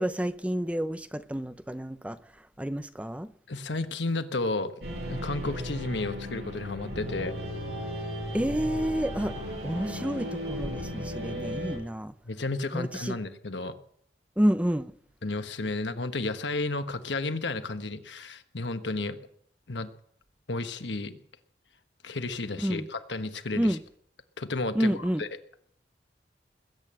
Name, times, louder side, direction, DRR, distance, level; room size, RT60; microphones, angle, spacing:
voice 1, 0.0-2.2 2.6-3.3 8.3-9.3 9.6-12.1 12.7-13.2 14.4-14.9 22.6-22.9 23.6-23.8 24.7-25.2, equal, 5° right, 0.6 m, -29 dB
voice 2, 3.5-4.7 5.0-7.3 12.2-13.7 15.2-19.2 19.7-19.9 20.5-21.2 22.0-23.8 24.4-25.3, left 2 dB, 85° left, 1.3 m, -32 dB
sound 1, 4.8-11.8, equal, 70° right, 7.8 m, -35 dB
21.0 x 8.8 x 7.6 m
head